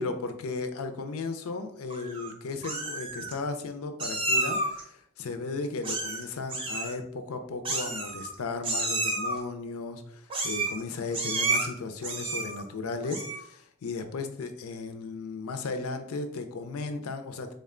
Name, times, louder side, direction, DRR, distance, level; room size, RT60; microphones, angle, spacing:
voice 1, 0.0-17.5, left 3 dB, 80° left, 7 dB, 0.5 m, -35 dB
Meow, 1.9-2.3 2.6-3.3 4.0-4.8 5.8-6.2 6.5-6.9 7.6-8.3 8.6-9.4 10.3-10.8 11.1-11.7 12.0-12.6 13.0-13.5, right 2 dB, 25° right, 0.6 m, -30 dB
3.5 x 2.2 x 3.6 m, 0.67 s
head